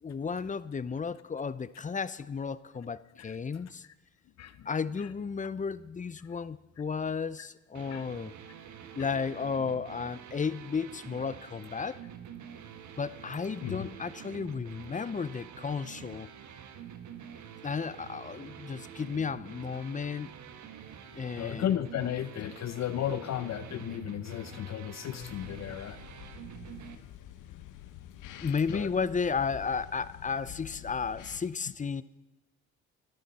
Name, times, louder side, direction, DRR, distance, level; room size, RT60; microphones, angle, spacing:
voice 1, 0.0-3.8 4.7-8.3 9.0-12.0 13.0-16.3 17.6-20.3 21.1-21.6 28.4-32.0, left 5 dB, 25° left, 16 dB, 0.6 m, -33 dB
voice 2, 3.2-3.6 4.4-4.7 5.0-5.1 6.2-6.3 7.4-7.5 7.9-8.1 9.0-9.1 13.6-13.9 21.4-26.0 28.7-28.9, left 11 dB, 60° left, 13 dB, 0.7 m, -34 dB
sound 1, 7.7-27.0, right 8 dB, 70° right, 1.5 m, -47 dB
sound 2, 25.2-31.4, left 12 dB, 85° left, 1.0 m, -48 dB
26.5 x 12.0 x 4.2 m, 1.1 s
cardioid pair, 90°, 30 cm